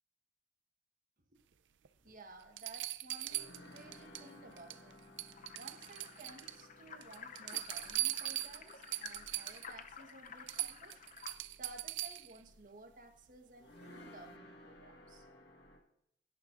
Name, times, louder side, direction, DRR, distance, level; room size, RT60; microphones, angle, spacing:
sound 1, 1.9-2.0 2.6-4.3 4.6-4.9 5.2-6.6 7.0-9.7 10.1-10.2 10.5-12.4 14.1-14.2, right 16 dB, 80° right, 0.5 m, -40 dB
sound 2, 2.0-15.8, left 1 dB, 65° left, 2.0 m, -59 dB
voice 1, 2.0-5.0 5.6-10.9 11.6-15.3, right 2 dB, 50° right, 5 dB, 1.3 m, -56 dB
sound 3, 5.3-11.3, left 6 dB, 45° left, 0.6 m, -52 dB
17.0 x 9.7 x 2.5 m, 0.74 s
head